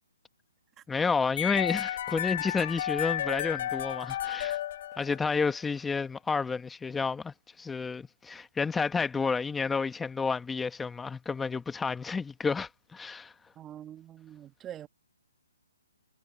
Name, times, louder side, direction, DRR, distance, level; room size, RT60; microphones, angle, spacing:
voice 1, 0.9-4.6 5.0-13.3, left 5 dB, 5° left, 1.2 m, -30 dB
sound 1, 1.4-5.5, left 11 dB, 45° left, 0.7 m, -32 dB
voice 2, 13.6-14.9, right 11 dB, 15° right, 1.9 m, -44 dB
hypercardioid pair, 150°, 0 cm